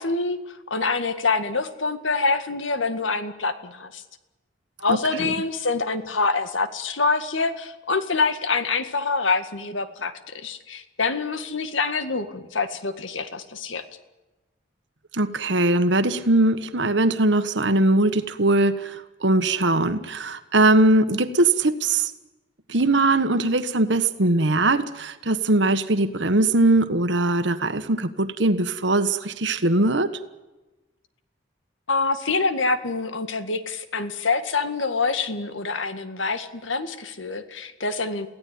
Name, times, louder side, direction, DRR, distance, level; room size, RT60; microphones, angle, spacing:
voice 1, 0.0-4.0 4.8-13.8 31.9-38.3, left 4 dB, 90° left, 10 dB, 2.0 m, -26 dB
voice 2, 4.9-5.3 15.1-22.1 22.7-30.1, right 2 dB, 70° right, 11 dB, 1.4 m, -21 dB
23.5 x 16.5 x 9.6 m, 1.1 s
head